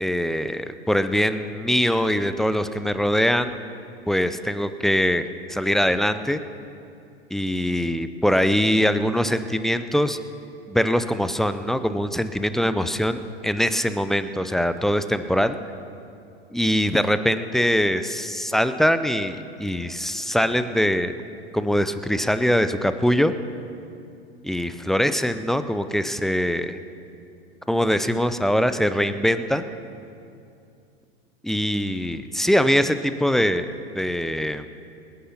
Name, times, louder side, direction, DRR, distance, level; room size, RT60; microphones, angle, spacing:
voice 1, 0.0-3.6 4.1-6.4 7.3-10.2 10.7-15.6 16.5-21.2 21.5-23.3 24.4-26.8 27.7-29.7 31.4-34.7, equal, ahead, 11 dB, 0.3 m, -22 dB
19.5 x 10.5 x 5.8 m, 2.6 s
hypercardioid pair, 105°, 32 cm